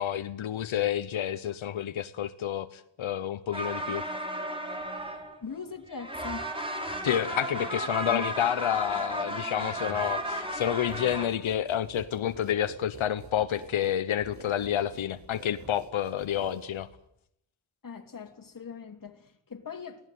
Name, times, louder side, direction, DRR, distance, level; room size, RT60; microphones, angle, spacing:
voice 1, 0.0-4.0 7.0-16.9, left 10 dB, 90° left, 10 dB, 1.0 m, -29 dB
sound 1, 3.5-5.6 5.9-11.3, right 1 dB, 10° right, 4.5 m, -34 dB
voice 2, 5.4-6.5 7.5-8.2 17.8-20.1, left 6 dB, 45° left, 4 dB, 3.1 m, -41 dB
sound 2, 10.6-17.1, right 1 dB, 35° right, 5.0 m, -48 dB
23.5 x 18.0 x 9.3 m, 0.76 s
wide cardioid pair, 105°, 46 cm